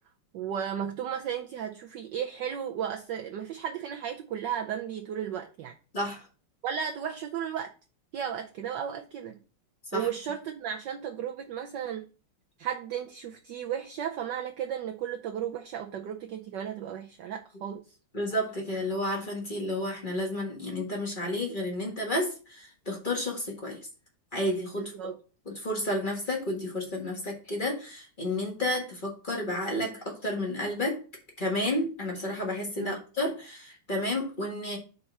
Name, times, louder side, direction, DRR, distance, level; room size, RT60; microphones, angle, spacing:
voice 1, 0.3-5.7 6.6-7.7 8.1-9.4 9.9-12.1 12.6-18.0 24.8-25.2 32.8-32.9, right 9 dB, 70° right, 1.1 m, -34 dB
voice 2, 18.1-23.8 24.3-25.1 25.4-31.0 31.4-34.8, left 1 dB, 25° left, 1.4 m, -31 dB
5.2 x 4.2 x 5.8 m
omnidirectional pair, 2.4 m